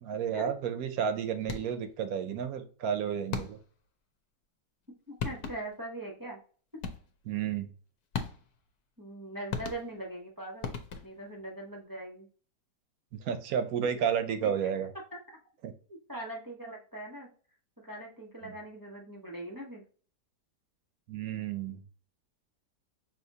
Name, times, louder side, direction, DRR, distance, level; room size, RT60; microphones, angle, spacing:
voice 1, 0.0-3.6 7.3-7.7 13.2-14.9 15.6-15.7 18.4-18.5 21.1-21.8, right 8 dB, 70° right, 8 dB, 1.0 m, -31 dB
sound 1, 1.4-1.9 3.3-3.8 4.9-5.0 5.2-5.8 6.8-7.3 8.1-8.7 9.5-10.2 10.6-11.3, left 6 dB, 70° left, 1.1 m, -38 dB
voice 2, 5.1-6.4 9.0-10.7 11.0-12.3 14.4-14.7 15.1-15.4 16.1-17.3 17.8-19.8, right 1 dB, 20° right, -2 dB, 0.5 m, -41 dB
5.6 x 2.9 x 2.7 m, 0.42 s
omnidirectional pair, 1.8 m